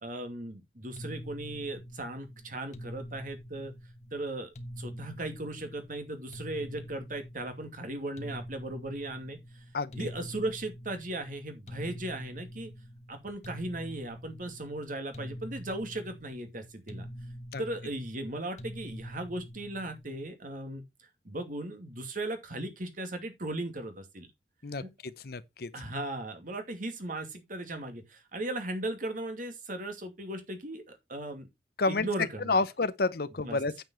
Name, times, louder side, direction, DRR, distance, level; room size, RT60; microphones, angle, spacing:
voice 1, 0.0-3.7 4.1-4.5 4.8-9.6 9.9-12.7 13.1-17.1 17.6-20.8 21.2-24.3 24.8-24.9 25.7-31.5 31.9-32.6 33.4-33.6, right 1 dB, 50° right, 2.5 m, -37 dB
sound 1, 1.0-20.3, equal, 40° left, 1.3 m, -45 dB
voice 2, 9.7-10.1 17.5-17.6 24.6-25.7 31.8-32.1 32.5-33.8, left 3 dB, 60° left, 0.8 m, -30 dB
9.0 x 7.2 x 4.4 m
head